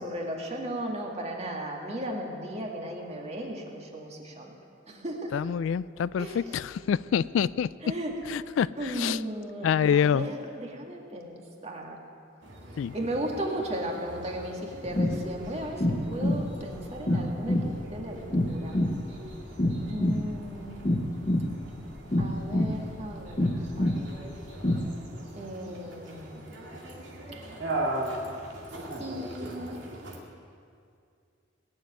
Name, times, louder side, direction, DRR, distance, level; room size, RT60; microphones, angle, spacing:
voice 1, 0.0-4.5 4.9-5.3 6.2-6.6 7.8-8.2 8.8-12.0 12.9-18.8 19.8-21.0 22.2-23.9 25.4-26.7 27.3-27.4 29.0-29.8, right 1 dB, 35° right, 0 dB, 2.1 m, -36 dB
voice 2, 5.3-7.7 8.3-9.2 9.6-10.3 12.8-12.9, left 8 dB, 75° left, 19 dB, 0.3 m, -26 dB
sound 1, 12.4-30.2, right 1 dB, 70° right, 2.5 m, -40 dB
sound 2, 14.8-24.9, left 1 dB, 30° left, 0.8 m, -28 dB
18.5 x 7.6 x 9.3 m, 2.4 s
head